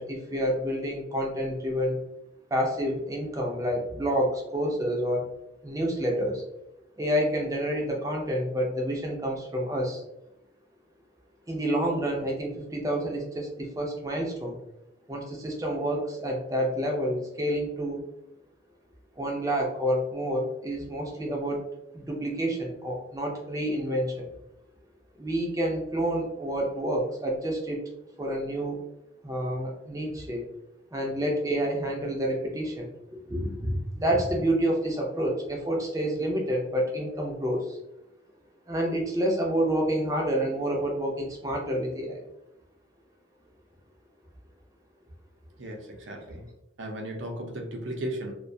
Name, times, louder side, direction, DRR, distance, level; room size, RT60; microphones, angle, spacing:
voice 1, 0.0-2.0 2.5-5.3 5.6-6.4 7.0-10.0 11.5-14.6 15.1-18.0 19.2-21.6 21.9-24.3 25.2-27.8 28.2-28.8 29.2-30.4 30.9-32.9 33.3-37.8 38.7-42.2, equal, 20° right, 0 dB, 0.4 m, -28 dB
voice 2, 45.6-46.5 46.8-48.3, right 1 dB, 80° right, 2 dB, 0.6 m, -35 dB
2.4 x 2.2 x 2.5 m, 0.86 s
head